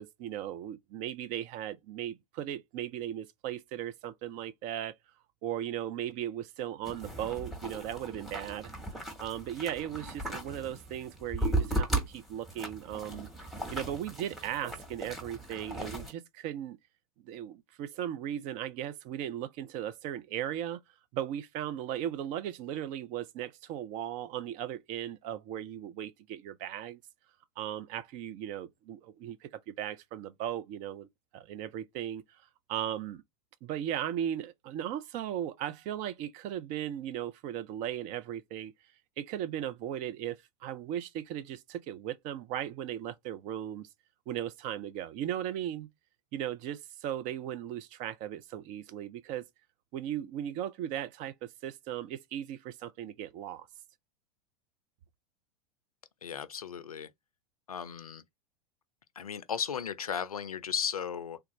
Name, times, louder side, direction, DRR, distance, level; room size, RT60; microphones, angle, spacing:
voice 1, 0.0-5.0 5.4-8.7 9.2-13.3 13.7-16.8 17.2-20.8 21.1-27.0 27.6-31.1 31.3-32.2 32.7-33.2 33.6-38.7 39.2-43.9 44.3-45.9 46.3-49.5 49.9-53.7, right 11 dB, 45° right, 0.6 m, -37 dB
sound 1, 6.8-16.1, right 1 dB, ahead, 1.2 m, -36 dB
voice 2, 56.2-57.1 57.7-58.2 59.2-61.4, left 7 dB, 85° left, 0.4 m, -35 dB
3.4 x 2.4 x 3.1 m
figure-of-eight pair, 90°, 18 cm